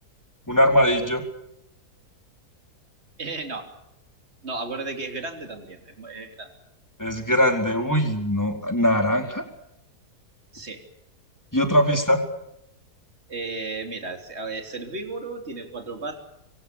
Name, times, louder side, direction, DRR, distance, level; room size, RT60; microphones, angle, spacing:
voice 1, 0.5-1.2 7.0-9.4 11.5-12.2, equal, 10° left, 4 dB, 4.3 m, -21 dB
voice 2, 3.2-3.7 4.4-6.5 10.5-10.8 13.3-16.2, right 3 dB, 40° right, 5 dB, 3.8 m, -34 dB
28.0 x 23.0 x 7.0 m, 0.82 s
omnidirectional pair, 1.7 m